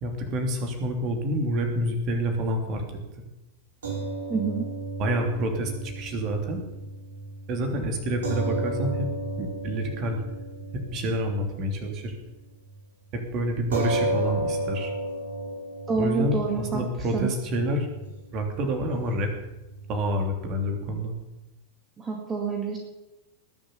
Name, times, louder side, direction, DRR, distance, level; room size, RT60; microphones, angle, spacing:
voice 1, 0.0-2.8 3.2-3.3 5.0-6.6 7.5-9.1 9.4-10.2 10.7-12.2 13.1-14.9 15.9-17.9 18.3-19.3 19.9-21.1, equal, 35° right, 4 dB, 3.0 m, -28 dB
sound 1, 3.8-12.3 12.6-12.8 13.7-20.2, right 1 dB, 65° right, 5.2 m, -34 dB
voice 2, 4.3-4.7 15.9-16.8 17.1-17.3 22.0-22.8, right 4 dB, 20° right, 1 dB, 2.2 m, -27 dB
20.0 x 7.4 x 7.0 m, 0.98 s
figure-of-eight pair, 90°, 0 cm